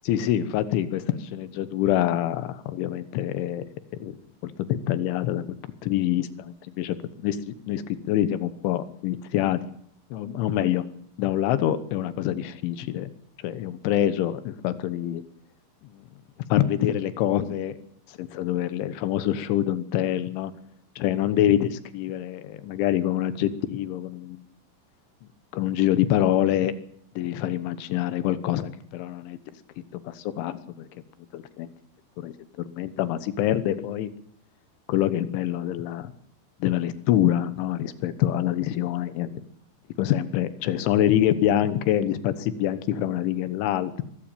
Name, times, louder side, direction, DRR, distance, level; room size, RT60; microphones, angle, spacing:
voice 1, 0.1-3.6 3.9-4.1 4.4-5.6 5.8-9.6 10.1-10.8 11.2-13.1 13.4-15.2 15.8-16.1 16.5-17.8 18.1-20.5 21.0-24.4 25.5-26.7 27.2-29.4 30.1-30.9 31.3-31.7 32.2-34.1 34.9-36.1 36.6-39.4 40.0-44.0, left 12 dB, 85° left, 13 dB, 3.6 m, -25 dB
23.5 x 14.5 x 9.1 m, 0.69 s
omnidirectional pair, 5.3 m